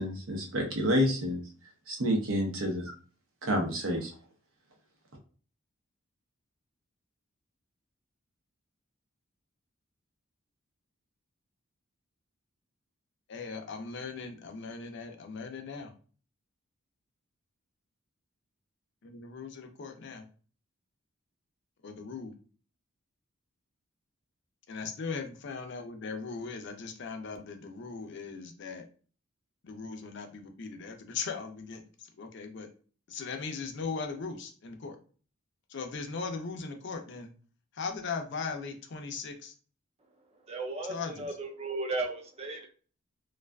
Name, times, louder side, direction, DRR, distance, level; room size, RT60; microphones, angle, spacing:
voice 1, 0.0-1.4 1.9-2.8 3.4-4.1, equal, 70° right, 1 dB, 0.7 m, -28 dB
voice 2, 13.3-15.9 19.0-20.2 21.8-22.3 24.7-28.8 29.6-31.8 32.2-32.7 33.1-35.0 35.7-37.3 37.8-39.5 40.9-41.3, left 4 dB, 55° left, 5 dB, 0.4 m, -38 dB
voice 3, 40.5-42.7, right 2 dB, 30° right, 1 dB, 0.5 m, -35 dB
2.4 x 2.4 x 2.2 m, 0.40 s
head